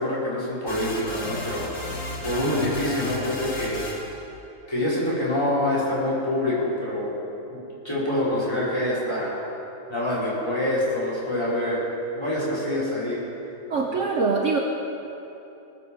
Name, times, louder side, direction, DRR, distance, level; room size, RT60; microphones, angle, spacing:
voice 1, 0.0-1.7 2.2-3.8 4.7-7.1 7.5-7.6 7.8-9.4 9.9-11.9 12.1-13.2 13.9-14.0, left 1 dB, 15° left, -8 dB, 4.9 m, -26 dB
sound 1, 0.7-4.2, left 1 dB, 65° left, 2.7 m, -34 dB
voice 2, 13.7-14.6, right 4 dB, 55° right, 0 dB, 1.3 m, -23 dB
19.5 x 8.4 x 7.9 m, 2.9 s
omnidirectional pair, 1.7 m